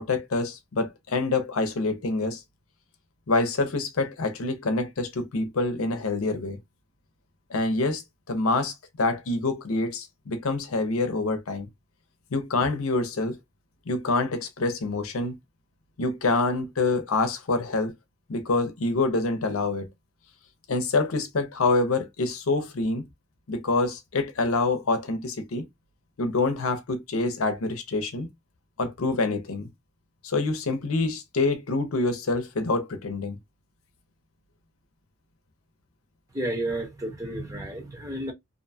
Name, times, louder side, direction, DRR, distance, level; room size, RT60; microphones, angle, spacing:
voice 1, 0.0-2.4 3.3-6.6 7.5-11.7 12.3-13.4 13.9-15.4 16.0-17.9 18.3-19.9 20.7-23.1 23.5-25.7 26.2-28.3 28.8-29.7 30.2-33.4, left 3 dB, 85° left, 0.7 m, -26 dB
voice 2, 36.3-38.3, right 1 dB, 15° right, 0.8 m, -31 dB
2.6 x 2.3 x 2.6 m
head